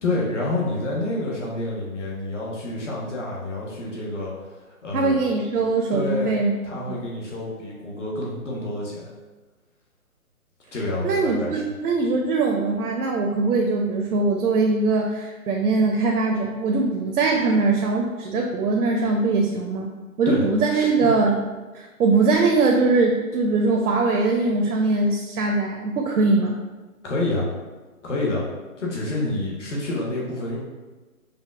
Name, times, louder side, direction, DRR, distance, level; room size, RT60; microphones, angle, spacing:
voice 1, 0.0-4.4 4.8-5.1 5.9-6.3 6.6-9.1 10.7-11.6 20.2-20.4 20.7-21.1 27.0-27.5 28.0-28.4 28.8-30.6, left 2 dB, 55° left, -4 dB, 1.0 m, -28 dB
voice 2, 4.9-6.5 6.9-7.0 11.0-19.9 20.2-21.4 21.7-26.6, right 3 dB, 85° right, 1 dB, 0.6 m, -21 dB
4.9 x 2.0 x 2.3 m, 1.2 s
hypercardioid pair, 160°, 44 cm